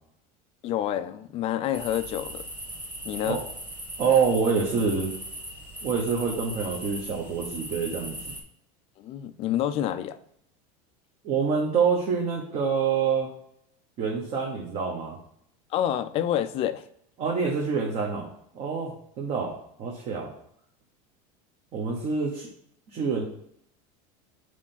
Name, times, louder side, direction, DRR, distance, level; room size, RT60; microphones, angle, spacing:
voice 1, 0.6-2.4 3.0-3.4 9.0-10.2 15.7-16.8, left 11 dB, 35° left, 12 dB, 0.5 m, -28 dB
sound 1, 1.7-8.4, right 1 dB, 10° right, 1.4 m, -39 dB
voice 2, 4.0-5.1 5.8-8.3 11.2-13.3 14.0-15.2 17.2-18.3 18.5-20.3 21.7-22.5 22.9-23.2, right 5 dB, 35° right, -1 dB, 1.1 m, -26 dB
4.9 x 4.5 x 5.6 m, 0.73 s
supercardioid pair, 160°, 18 cm